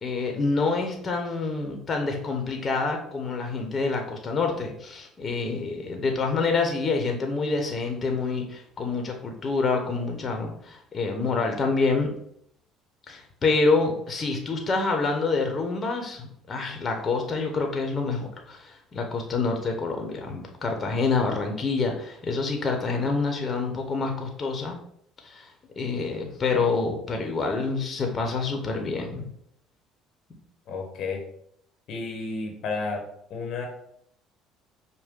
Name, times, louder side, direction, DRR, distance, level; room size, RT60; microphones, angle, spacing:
voice 1, 0.0-12.1 13.1-24.8 25.2-25.5 25.8-29.3, left 4 dB, 35° left, 3 dB, 1.0 m, -27 dB
voice 2, 30.7-31.2 31.9-33.0 33.3-33.7, left 4 dB, 65° left, 1 dB, 1.0 m, -31 dB
5.2 x 2.2 x 3.7 m, 0.70 s
supercardioid pair, 75°, 0 cm